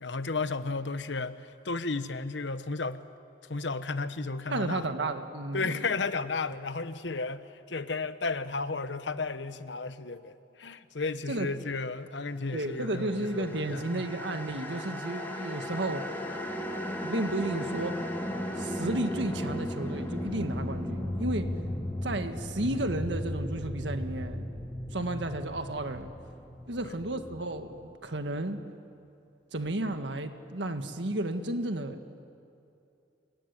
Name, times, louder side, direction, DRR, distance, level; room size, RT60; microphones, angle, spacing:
voice 1, 0.0-3.0 3.5-4.9 5.5-14.1 26.8-27.0, left 3 dB, 80° left, 1.0 m, -33 dB
voice 2, 4.5-5.8 11.3-11.5 12.5-16.1 17.0-18.0 18.6-21.6 22.0-24.4 24.9-26.1 26.7-28.6 29.5-32.0, right 1 dB, 75° right, 1.7 m, -32 dB
sound 1, 12.8-28.1, left 1 dB, 10° left, 2.9 m, -36 dB
26.0 x 22.0 x 9.9 m
head